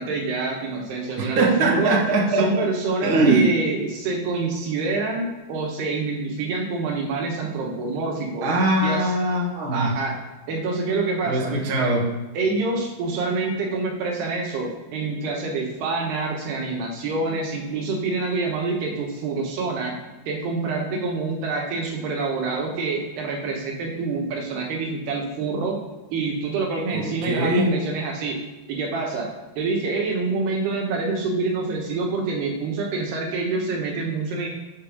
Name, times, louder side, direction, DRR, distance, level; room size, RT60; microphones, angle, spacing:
voice 1, 0.0-1.9 2.4-8.5 8.8-9.1 9.7-10.2 10.5-11.6 12.3-20.0 20.3-25.8 26.1-28.4 28.7-34.5, right 3 dB, 75° right, 0 dB, 3.1 m, -26 dB
voice 2, 1.2-2.7 3.0-3.5 8.4-9.9 11.3-12.1 26.9-27.7, right 2 dB, 45° right, -2 dB, 1.8 m, -21 dB
6.9 x 5.4 x 6.6 m, 1.1 s
omnidirectional pair, 5.1 m